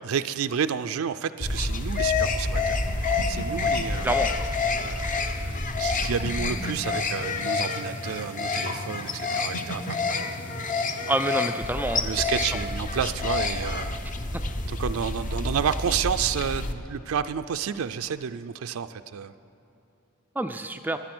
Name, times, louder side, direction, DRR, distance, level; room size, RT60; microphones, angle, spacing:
voice 1, 0.0-4.2 4.8-10.3 11.9-14.1 14.7-19.3, right 7 dB, 80° right, 9 dB, 0.4 m, -30 dB
sound 1, 1.4-16.7, left 3 dB, 40° left, 0.8 m, -28 dB
voice 2, 11.1-12.5 20.4-21.0, right 2 dB, 10° right, 7 dB, 0.3 m, -28 dB
23.5 x 8.5 x 6.1 m, 2.8 s
head